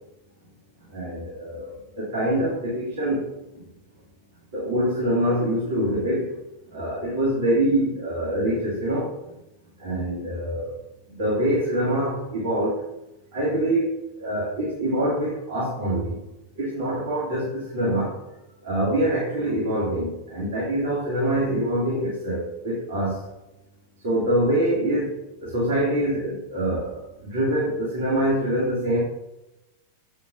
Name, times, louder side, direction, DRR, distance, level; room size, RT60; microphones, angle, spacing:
voice 1, 0.9-3.2 4.5-6.3 6.7-9.1 9.8-10.7 11.1-12.8 13.3-16.2 16.6-18.1 18.6-23.2 24.0-25.1 25.4-29.0, right 1 dB, 55° right, -7 dB, 2.2 m, -25 dB
7.6 x 6.2 x 2.5 m, 0.96 s
figure-of-eight pair, 90°, 0 cm